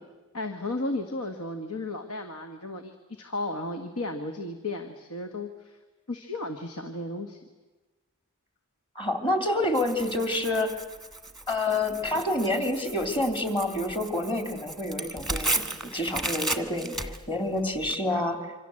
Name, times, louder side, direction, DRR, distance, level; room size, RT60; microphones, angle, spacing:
voice 1, 0.3-5.8 6.1-7.4, left 2 dB, 75° left, 6 dB, 1.7 m, -34 dB
voice 2, 8.9-10.8 11.5-18.5, left 1 dB, 25° left, 6 dB, 3.0 m, -28 dB
Tearing, 9.7-18.0, right 2 dB, ahead, 1.4 m, -35 dB
27.0 x 25.0 x 7.8 m, 1.2 s
head